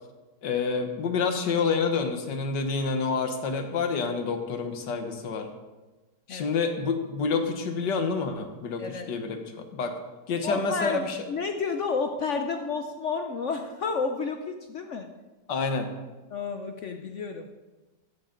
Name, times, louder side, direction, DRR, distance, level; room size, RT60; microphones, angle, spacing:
voice 1, 0.4-5.5 6.3-9.9 10.3-11.2 15.5-15.9, left 4 dB, 90° left, 6 dB, 1.8 m, -28 dB
voice 2, 10.4-15.1 16.3-17.5, left 4 dB, 55° left, 5 dB, 0.9 m, -31 dB
14.5 x 10.0 x 3.9 m, 1.2 s
omnidirectional pair, 1.8 m